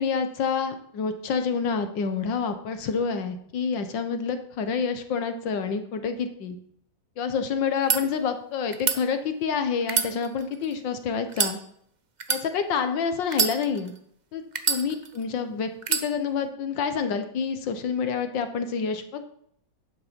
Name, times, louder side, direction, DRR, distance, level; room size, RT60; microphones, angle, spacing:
voice 1, 0.0-6.6 7.2-11.6 12.3-13.9 14.3-14.4 14.7-19.2, left 6 dB, 75° left, 8 dB, 1.8 m, -28 dB
sound 1, 7.7-8.0 8.7-9.0 9.8-10.7 11.3-11.6 12.2-12.4 13.3-14.0 14.6-15.2 15.8-16.1, right 5 dB, 45° right, 0.5 m, -26 dB
11.5 x 8.8 x 5.3 m, 0.69 s
omnidirectional pair, 2.1 m